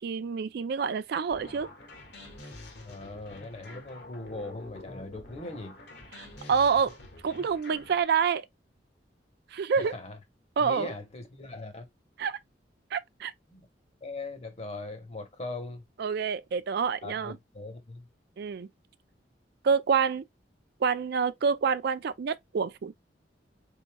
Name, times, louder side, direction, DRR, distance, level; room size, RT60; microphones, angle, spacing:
voice 1, 0.0-1.7 6.2-7.0 7.2-8.5 9.5-9.9 10.6-10.9 12.2-12.4 12.9-13.3 16.0-17.4 18.4-18.7 19.6-20.3 20.8-22.9, right 6 dB, 60° right, 0.4 m, -27 dB
sound 1, 1.3-8.0, left 2 dB, 65° left, 1.5 m, -47 dB
voice 2, 2.8-5.8 9.8-10.2 10.6-11.9 13.5-13.7 14.0-15.9 17.0-18.1, left 2 dB, 35° left, 1.1 m, -40 dB
4.0 x 3.6 x 2.2 m
head